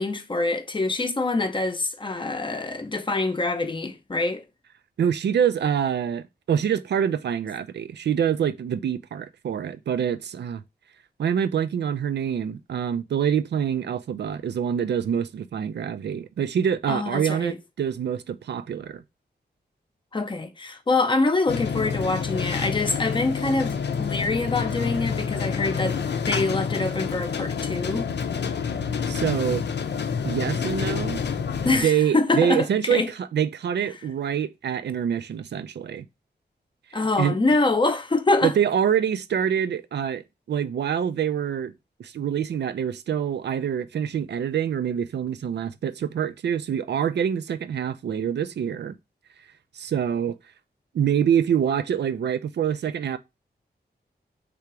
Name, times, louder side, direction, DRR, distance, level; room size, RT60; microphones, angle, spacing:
voice 1, 0.0-4.4 16.9-17.6 20.1-26.0 26.2-28.1 31.6-33.1 36.9-38.5, left 3 dB, 30° left, 0.6 m, -25 dB
voice 2, 5.0-10.6 11.2-19.0 29.1-29.6 30.2-31.2 31.8-36.1 37.2-37.4 38.4-41.7 42.0-48.9 49.7-50.4 50.9-53.2, right 8 dB, 85° right, 0.4 m, -25 dB
sound 1, 21.5-31.8, left 6 dB, 80° left, 0.5 m, -28 dB
3.4 x 2.9 x 4.6 m
wide cardioid pair, 130°, 17 cm